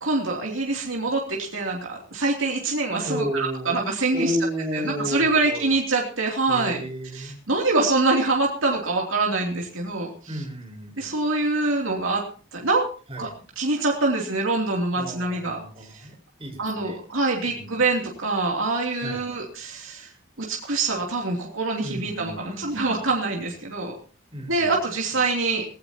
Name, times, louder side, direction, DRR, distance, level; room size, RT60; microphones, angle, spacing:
voice 1, 0.0-4.3 4.7-6.8 7.1-10.4 11.0-12.2 12.5-12.9 13.2-13.3 13.6-15.6 15.9-16.1 16.6-20.1 20.4-23.9 24.5-25.6, right 3 dB, 75° right, -1 dB, 3.0 m, -25 dB
voice 2, 3.0-3.8 4.1-5.7 6.4-7.3 10.3-11.1 13.1-13.4 14.9-17.0 17.6-17.8 19.0-19.4 21.8-23.2 24.3-24.7, equal, 25° right, 4 dB, 4.7 m, -33 dB
18.5 x 17.5 x 2.9 m, 0.38 s
head